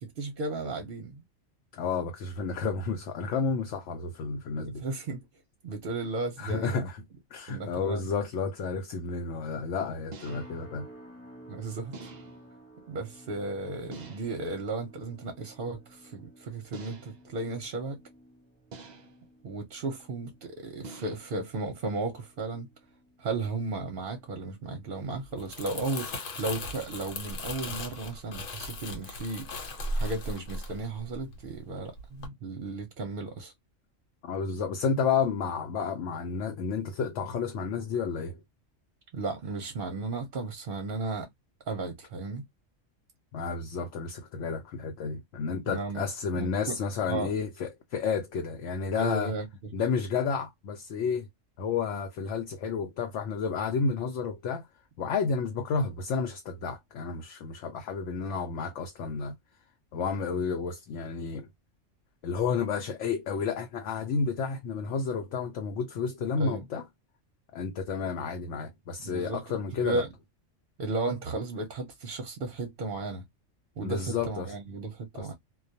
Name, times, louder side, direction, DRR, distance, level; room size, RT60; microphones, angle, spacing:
voice 1, 0.0-1.2 4.6-5.3 5.6-6.9 7.5-8.1 11.5-12.1 12.9-18.0 19.4-22.7 23.2-29.5 29.9-33.5 39.1-41.3 41.7-42.4 45.7-46.0 46.3-46.8 47.1-47.3 49.0-49.7 66.4-66.6 69.0-69.4 69.8-70.1 70.8-73.2 73.8-75.3, right 3 dB, 55° right, 0.7 m, -34 dB
voice 2, 1.7-4.8 6.4-7.0 7.3-10.9 34.2-38.4 43.3-49.3 49.7-51.3 51.6-54.7 55.0-59.3 59.9-61.5 62.2-66.8 67.5-70.0 73.8-74.5 75.1-75.3, left 5 dB, 70° left, 0.9 m, -31 dB
sound 1, 8.2-8.4 10.1-10.7 11.9-12.5 13.9-14.5 16.7-17.3 18.7-19.3 20.8-21.4, right 3 dB, 85° right, 0.3 m, -46 dB
sound 2, 10.3-25.5 25.8-26.2 26.7-26.9, right 1 dB, 10° left, 0.9 m, -53 dB
Crumpling crinkling, 25.2-31.6 32.0-32.3, left 1 dB, 90° left, 1.2 m, -37 dB
2.3 x 2.2 x 2.6 m
omnidirectional pair, 1.3 m